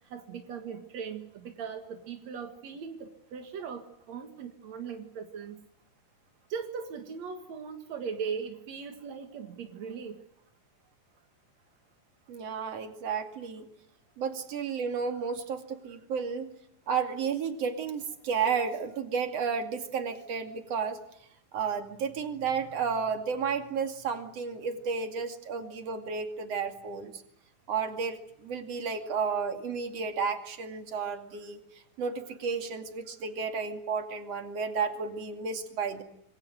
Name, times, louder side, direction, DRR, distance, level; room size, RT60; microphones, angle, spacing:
voice 1, 0.1-5.6 6.5-10.2, right 6 dB, 60° right, 6 dB, 1.8 m, -39 dB
voice 2, 12.3-13.7 14.2-16.5 16.9-21.0 21.5-27.2 27.7-31.6 32.0-36.0, right 6 dB, 40° right, 6 dB, 2.7 m, -32 dB
27.0 x 22.0 x 7.9 m, 0.78 s
omnidirectional pair, 5.6 m